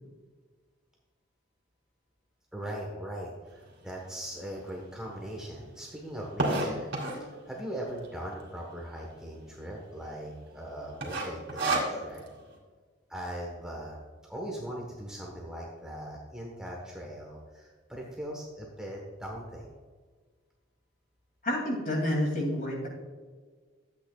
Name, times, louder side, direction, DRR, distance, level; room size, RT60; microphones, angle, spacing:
voice 1, 2.5-6.9 7.2-12.2 13.1-14.0 14.3-19.7, right 1 dB, 5° right, -2 dB, 1.1 m, -40 dB
sound 1, 3.9-4.0 4.6-4.7 4.8-4.9 5.2-7.3 8.0-8.4 8.7-8.8 9.0-9.2 9.7-10.1 10.3-10.6 11.0-12.3, right 2 dB, 55° right, 2.6 m, -30 dB
voice 2, 21.4-22.9, left 1 dB, 40° left, -2 dB, 2.6 m, -29 dB
13.5 x 8.4 x 2.3 m, 1.5 s
head